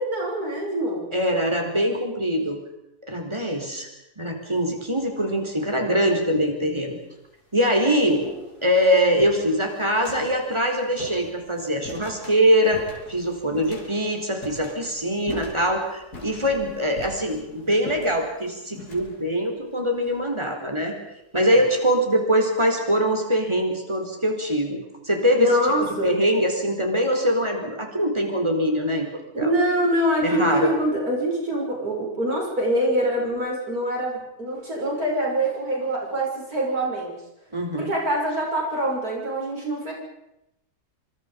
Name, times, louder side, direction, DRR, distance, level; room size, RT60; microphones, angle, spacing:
voice 1, 0.0-1.1 25.4-26.1 29.3-37.1 37.8-39.9, right 1 dB, 70° right, -2 dB, 7.5 m, -24 dB
voice 2, 1.1-2.6 3.1-3.9 4.2-7.0 7.5-8.2 8.6-21.0 21.3-25.5 26.0-29.1 29.4-29.5 30.2-30.7 37.5-37.9, equal, 15° right, 3 dB, 4.3 m, -23 dB
sound 1, 4.4-4.9 5.8-5.9 6.7-6.8 7.2-20.8, left 2 dB, 90° left, 4.5 m, -43 dB
26.5 x 25.5 x 5.3 m, 0.88 s
omnidirectional pair, 1.6 m